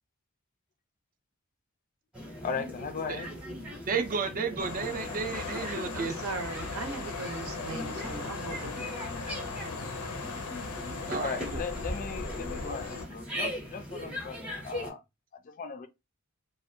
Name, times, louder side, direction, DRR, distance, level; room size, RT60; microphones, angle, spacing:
sound 1, 2.1-14.9, equal, 5° right, 0.7 m, -39 dB
voice 1, 2.4-3.3 11.2-15.0 15.3-15.9, left 5 dB, 40° left, 0.3 m, -37 dB
voice 2, 3.9-6.1 11.1-11.6, right 5 dB, 40° right, 0.3 m, -32 dB
sound 2, 4.6-13.1, left 4 dB, 90° left, 0.5 m, -38 dB
voice 3, 5.9-9.0, right 3 dB, 75° right, 0.8 m, -39 dB
2.4 x 2.1 x 2.6 m
head